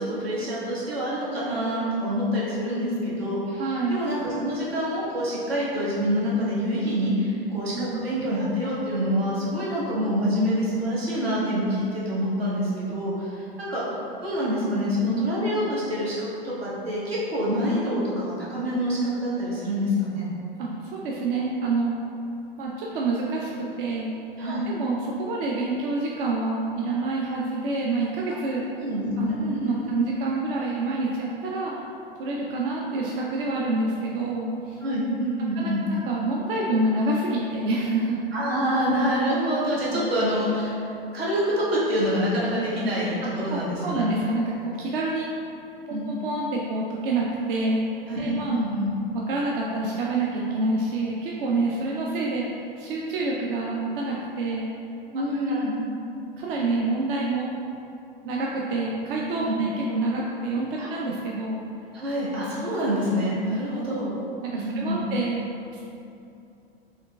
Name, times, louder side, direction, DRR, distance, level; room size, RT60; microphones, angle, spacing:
voice 1, 0.0-13.8 14.2-20.2 24.4-24.6 28.7-29.9 34.8-35.8 38.3-40.7 41.1-44.1 45.9-46.0 48.1-48.9 55.1-55.8 59.4-59.5 60.8-60.9 61.9-64.2 64.6-65.0, equal, 90° right, -8 dB, 1.3 m, -26 dB
voice 2, 3.5-4.0 7.7-8.0 20.6-21.9 22.6-24.1 24.5-28.6 29.2-31.7 32.2-34.8 35.5-38.2 39.9-40.0 43.2-45.3 45.9-47.9 48.2-48.6 49.3-54.7 55.5-55.7 56.4-57.5 58.2-61.6 63.7-63.9 64.4-65.4 65.7-65.8, right 2 dB, 60° right, -3 dB, 0.5 m, -27 dB
4.5 x 3.1 x 2.3 m, 2.7 s
hypercardioid pair, 110°, 30 cm